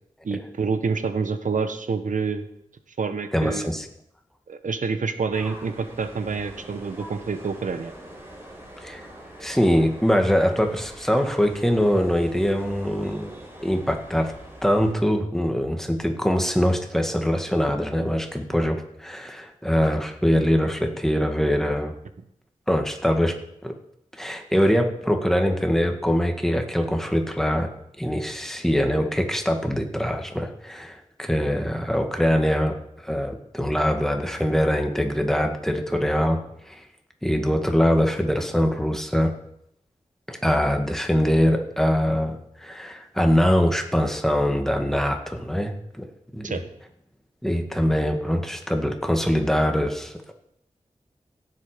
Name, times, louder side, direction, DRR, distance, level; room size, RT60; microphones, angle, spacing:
voice 1, 0.2-2.5 3.0-3.7 4.5-7.9 46.4-46.6, right 5 dB, 85° right, 9 dB, 1.2 m, -27 dB
voice 2, 3.3-3.9 8.8-9.0 9.4-13.3 13.6-14.3 14.6-21.9 22.7-23.4 23.6-23.7 24.1-27.7 28.0-36.4 36.7-36.8 37.2-39.3 40.3-46.1 46.3-46.6 47.4-50.3, equal, 5° left, 4 dB, 1.9 m, -23 dB
sound 1, 5.3-14.9, right 1 dB, 20° right, 4.5 m, -43 dB
17.0 x 7.9 x 5.2 m, 0.75 s
wide cardioid pair, 60°, 13 cm